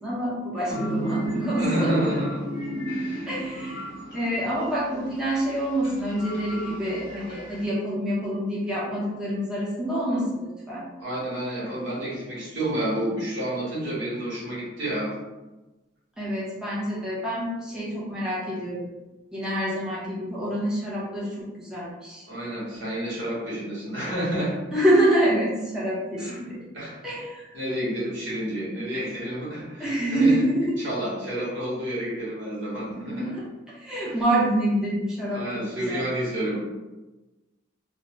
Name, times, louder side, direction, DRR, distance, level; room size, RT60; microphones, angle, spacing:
voice 1, 0.0-2.1 3.3-10.8 16.2-18.9 19.3-21.3 21.6-22.3 24.7-26.6 27.0-27.4 29.8-30.8 32.9-33.4 33.7-35.4 35.9-36.0, right 1 dB, 5° right, -9 dB, 0.7 m, -26 dB
sound 1, 0.7-7.6, right 1 dB, 55° left, 0.7 m, -33 dB
voice 2, 1.6-2.4 2.9-3.3 11.0-15.1 22.3-24.6 26.2-26.4 26.7-26.9 27.5-30.3 30.8-33.3 34.1-34.2 35.3-36.6, right 1 dB, 65° right, -9 dB, 1.4 m, -30 dB
2.9 x 2.1 x 2.9 m, 1.1 s
head